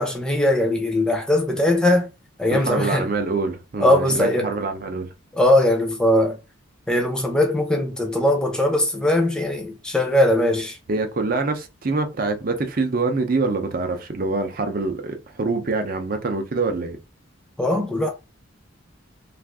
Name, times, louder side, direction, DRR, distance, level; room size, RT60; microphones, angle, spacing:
voice 1, 0.0-2.1 2.4-3.1 3.8-4.5 5.3-6.4 6.9-10.8 17.6-18.1, left 1 dB, 5° left, 0.6 m, -20 dB
voice 2, 2.5-5.1 10.9-17.0, right 3 dB, 45° right, 0.6 m, -25 dB
2.5 x 2.5 x 3.5 m
head